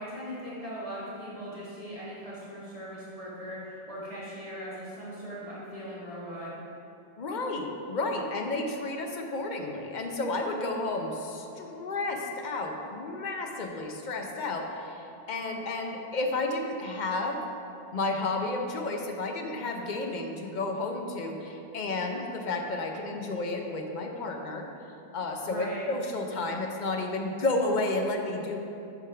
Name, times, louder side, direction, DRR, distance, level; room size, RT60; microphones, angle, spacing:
voice 1, 0.0-6.5 25.4-25.8, equal, 35° right, -10 dB, 1.5 m, -39 dB
voice 2, 7.2-17.4 17.9-24.7 25.1-28.6, left 2 dB, 50° left, 2 dB, 0.8 m, -32 dB
8.3 x 3.5 x 5.7 m, 2.8 s
omnidirectional pair, 1.0 m